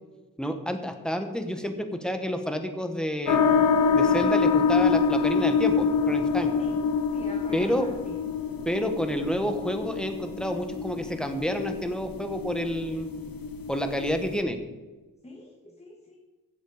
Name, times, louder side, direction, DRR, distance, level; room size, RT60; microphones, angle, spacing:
voice 1, 0.4-3.4 3.9-6.5 7.5-7.9 8.6-13.1 13.7-14.6, equal, ahead, 6 dB, 1.1 m, -29 dB
sound 1, 3.3-14.4, left 5 dB, 90° left, 1.2 m, -26 dB
voice 2, 7.1-8.1 15.2-16.2, left 2 dB, 20° left, -1 dB, 1.3 m, -45 dB
15.5 x 7.5 x 4.8 m, 1.2 s
wide cardioid pair, 170°, 34 cm